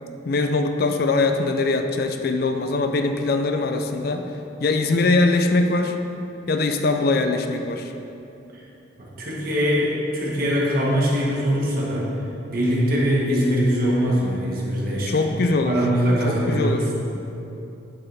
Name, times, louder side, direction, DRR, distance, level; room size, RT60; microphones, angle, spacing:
voice 1, 0.2-4.3 4.6-6.0 6.5-7.9 15.1-15.8 16.3-16.8, left 3 dB, 50° left, 6 dB, 0.4 m, -22 dB
voice 2, 9.0-12.1 12.5-15.3 15.6-16.8, equal, 50° right, -5 dB, 1.5 m, -22 dB
8.7 x 6.9 x 3.5 m, 2.9 s
head